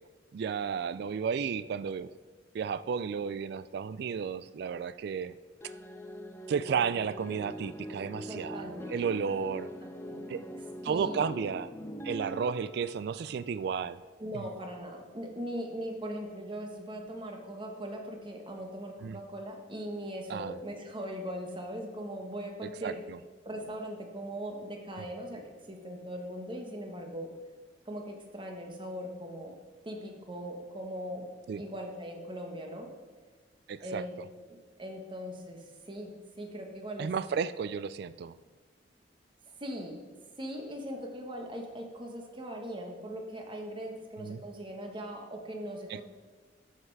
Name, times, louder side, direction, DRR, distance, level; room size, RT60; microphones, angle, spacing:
voice 1, 0.3-2.1 2.5-5.3 6.5-9.7 10.3-10.4 10.8-11.7 12.0-14.0 19.0-19.2 20.3-20.6 22.8-23.2 25.0-25.1 31.5-31.6 33.7-34.0 37.0-38.3 44.2-44.4 45.9-46.0, right 6 dB, 60° right, 15 dB, 0.3 m, -33 dB
sound 1, 5.6-14.0, equal, 15° left, 0.5 m, -43 dB
voice 2, 8.3-8.8 9.8-10.6 10.8-11.3 14.2-23.0 23.4-27.3 27.8-29.5 29.8-31.3 31.6-32.9 33.8-34.1 34.5-37.1 39.6-40.0 40.4-46.0, equal, 30° right, 2 dB, 1.4 m, -40 dB
13.5 x 5.5 x 4.7 m, 1.4 s
head